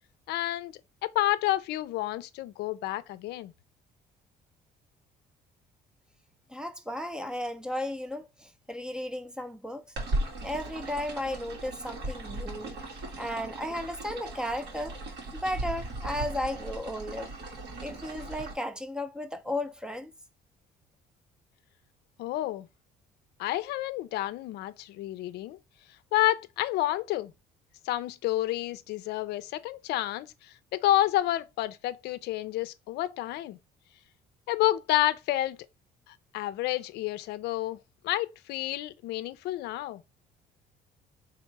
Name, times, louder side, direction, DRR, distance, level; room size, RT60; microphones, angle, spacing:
voice 1, 0.3-0.7 1.0-3.5 22.2-22.7 23.4-25.6 26.1-27.3 27.8-33.6 34.5-35.6 36.1-37.8 38.0-40.0, left 15 dB, 80° left, 0.5 m, -29 dB
voice 2, 6.5-9.8 10.4-15.0 15.3-17.3 17.8-20.1, left 1 dB, 5° right, 0.5 m, -35 dB
sound 1, 10.0-18.5, right 2 dB, 80° right, 2.3 m, -37 dB
3.5 x 2.9 x 4.5 m
cardioid pair, 110°, 17 cm